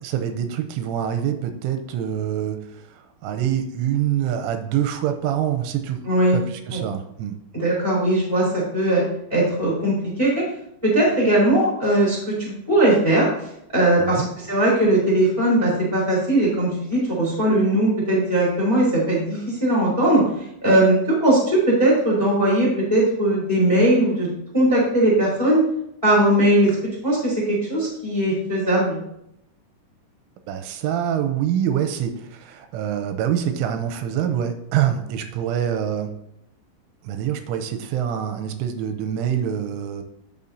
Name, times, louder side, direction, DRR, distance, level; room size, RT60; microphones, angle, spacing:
voice 1, 0.0-6.0 6.3-7.4 14.0-14.3 30.5-36.1 37.0-40.0, right 10 dB, 85° right, 8 dB, 3.0 m, -25 dB
voice 2, 6.0-6.4 6.7-6.8 7.5-9.0 9.3-9.9 10.2-10.4 10.8-13.3 13.7-14.2 14.5-20.2 20.6-24.3 24.5-25.6 26.0-26.7 27.0-29.0, right 1 dB, 5° left, -5 dB, 2.5 m, -19 dB
11.0 x 6.7 x 2.7 m, 0.77 s
omnidirectional pair, 5.7 m